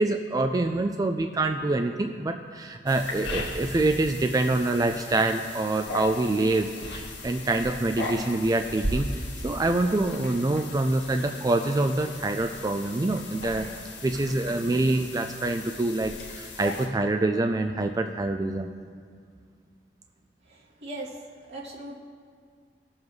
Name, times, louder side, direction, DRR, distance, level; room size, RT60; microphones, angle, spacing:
voice 1, 0.0-13.7 14.0-18.7, right 2 dB, 20° right, 6 dB, 0.3 m, -26 dB
sound 1, 2.9-16.9, left 1 dB, 85° left, 1.6 m, -37 dB
voice 2, 20.5-21.2 21.5-21.9, right 1 dB, 75° right, -7 dB, 2.7 m, -39 dB
17.5 x 7.2 x 3.2 m, 2.1 s
head